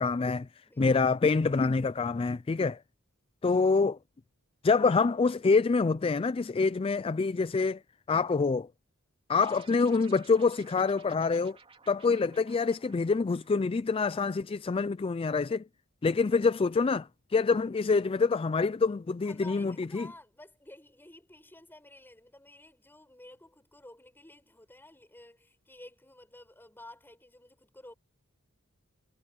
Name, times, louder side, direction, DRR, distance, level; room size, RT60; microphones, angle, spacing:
voice 1, 0.0-0.5 0.8-2.8 3.4-4.0 4.6-7.8 8.1-8.7 9.3-11.6 11.9-15.6 16.0-20.1, left 4 dB, 25° left, 0.3 m, -26 dB
voice 2, 0.7-1.1 19.2-27.9, left 1 dB, 10° left, 5.7 m, -52 dB
sound 1, 9.3-14.0, right 5 dB, 25° right, 3.1 m, -56 dB
head